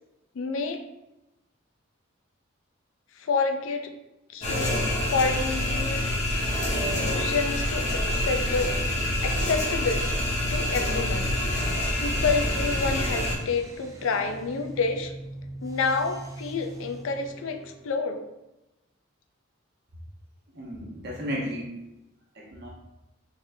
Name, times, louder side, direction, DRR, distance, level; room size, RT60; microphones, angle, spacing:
voice 1, 0.3-0.8 3.2-3.9 4.3-4.8 5.1-6.1 6.9-8.7 9.2-10.0 10.5-11.4 12.0-15.1 15.6-18.3, left 4 dB, 70° left, 7 dB, 0.4 m, -28 dB
sound 1, 4.4-13.3, left 1 dB, 35° left, 0.9 m, -26 dB
sound 2, 11.3-18.0, right 1 dB, 15° right, 0.3 m, -42 dB
voice 2, 20.5-21.8 22.3-22.7, equal, 50° right, -3 dB, 0.9 m, -34 dB
3.6 x 3.5 x 2.6 m, 0.93 s
head